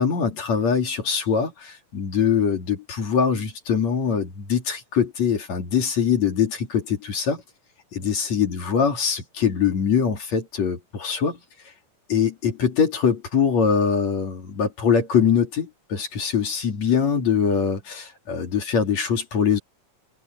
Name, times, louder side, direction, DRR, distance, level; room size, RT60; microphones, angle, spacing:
voice 1, 0.0-7.4 7.9-11.4 12.1-19.6, left 6 dB, 45° left, 3.8 m, -23 dB
omnidirectional pair, 4.5 m